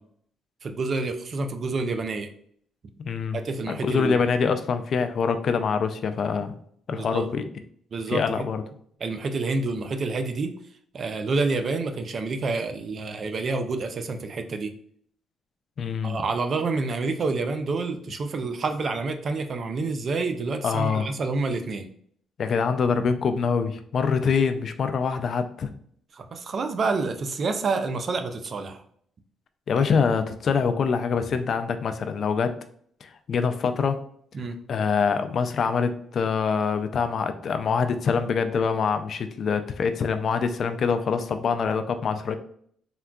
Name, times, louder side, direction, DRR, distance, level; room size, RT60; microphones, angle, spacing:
voice 1, 0.6-2.3 3.3-4.2 6.9-7.3 7.9-8.5 9.0-10.5 10.9-14.7 16.0-21.9 26.1-28.8 29.8-29.9 34.3-34.6, right 3 dB, 50° right, 7 dB, 0.4 m, -28 dB
voice 2, 3.0-3.4 3.7-6.5 6.9-7.4 8.1-8.6 15.8-16.2 20.6-21.1 22.4-25.7 29.7-32.5 33.0-34.0 34.7-42.4, left 5 dB, 55° left, 9 dB, 0.3 m, -25 dB
3.6 x 2.2 x 2.3 m, 0.62 s
cardioid pair, 90°, 0 cm